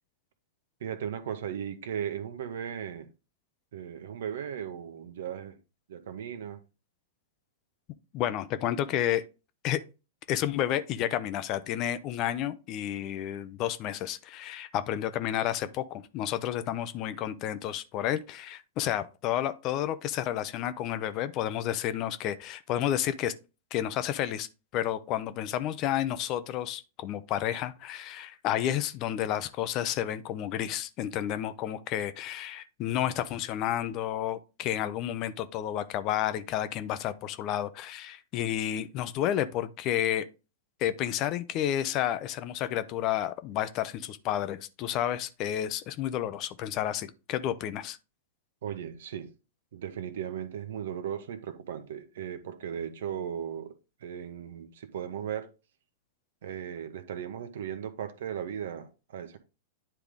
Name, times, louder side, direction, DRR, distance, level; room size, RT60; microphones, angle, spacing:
voice 1, 0.8-3.1 3.7-5.6 5.9-6.6 48.6-49.3 49.7-53.7 54.0-55.5 56.4-59.4, right 8 dB, 65° right, 1.0 m, -37 dB
voice 2, 8.1-9.2 9.6-9.8 10.3-23.3 23.7-24.5 24.7-40.3 40.8-48.0, left 11 dB, 40° left, 0.6 m, -31 dB
9.8 x 3.4 x 3.7 m
figure-of-eight pair, 100°, 0 cm